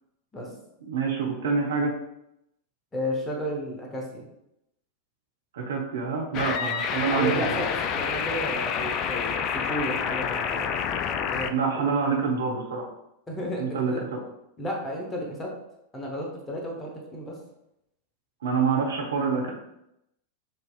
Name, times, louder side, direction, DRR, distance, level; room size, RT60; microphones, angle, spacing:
voice 1, 0.8-1.9 5.5-7.6 11.5-12.9 13.6-13.9 18.4-19.5, right 5 dB, 65° right, 0 dB, 0.9 m, -26 dB
voice 2, 2.9-4.3 6.6-6.8 7.1-10.7 11.3-11.8 13.3-14.0 14.6-15.5 15.9-17.4, equal, 15° left, -1 dB, 1.0 m, -33 dB
sound 1, 6.3-11.5, left 7 dB, 35° left, 0.3 m, -28 dB
6.2 x 2.8 x 2.4 m, 0.83 s
figure-of-eight pair, 90°, 0 cm